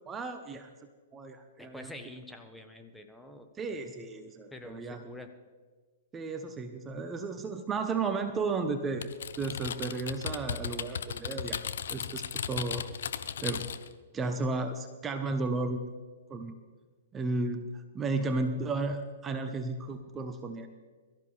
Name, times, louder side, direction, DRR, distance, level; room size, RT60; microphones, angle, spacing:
voice 1, 0.1-0.7 1.1-1.9 3.6-5.0 6.1-9.1 9.4-12.9 13.4-13.6 14.1-15.8 16.3-16.5 17.1-20.7, right 3 dB, 20° right, 7 dB, 1.1 m, -34 dB
voice 2, 1.6-3.8 4.5-5.4, left 1 dB, 5° left, 5 dB, 1.2 m, -47 dB
Typing, 9.0-13.9, left 7 dB, 65° left, 0.8 m, -36 dB
23.0 x 13.5 x 3.4 m, 1.4 s
hypercardioid pair, 115°, 0 cm